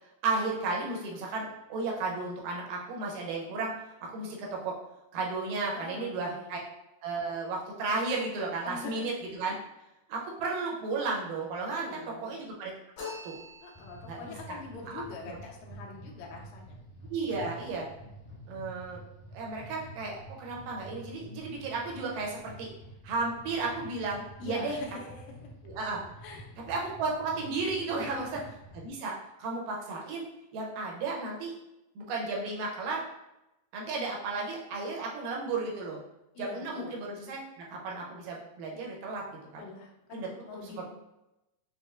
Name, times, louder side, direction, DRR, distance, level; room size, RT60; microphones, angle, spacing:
voice 1, 0.2-3.7 4.1-4.8 5.1-6.6 7.0-9.6 10.1-11.9 12.2-12.7 13.2-13.3 14.1-14.6 14.9-15.4 17.1-17.9 18.5-19.0 19.3-22.7 23.0-24.8 25.6-26.0 26.7-28.3 28.7-29.1 29.4-30.2 30.5-31.5 32.0-33.0 33.7-36.0 36.4-39.7 40.1-40.3 40.6-40.8, right 3 dB, 85° right, -2 dB, 2.4 m, -34 dB
voice 2, 5.7-6.6 8.6-9.1 11.8-12.4 13.6-16.8 24.4-25.0 26.2-26.6 27.9-28.3 36.4-37.0 39.6-40.8, left 4 dB, 75° left, 0 dB, 1.8 m, -43 dB
sound 1, 13.0-14.2, left 4 dB, 60° left, 2.3 m, -43 dB
sound 2, 13.7-28.9, right 1 dB, 40° left, 1.2 m, -49 dB
6.2 x 2.3 x 2.4 m, 0.92 s
omnidirectional pair, 3.8 m